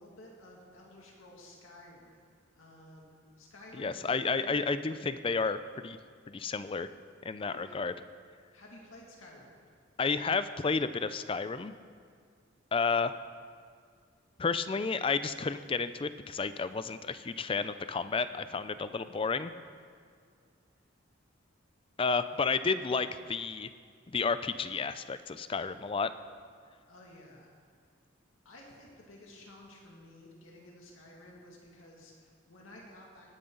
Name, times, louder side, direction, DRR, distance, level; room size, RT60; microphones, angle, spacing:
voice 1, 0.0-4.6 7.4-7.8 8.5-9.7 26.9-27.5 28.4-33.3, left 1 dB, 85° left, -2 dB, 2.2 m, -53 dB
voice 2, 3.8-6.0 6.3-6.9 7.2-7.9 10.0-11.7 12.7-13.1 14.4-19.5 22.0-23.7 24.1-26.1, left 4 dB, 25° left, 12 dB, 0.4 m, -31 dB
18.0 x 11.0 x 3.9 m, 2.1 s
head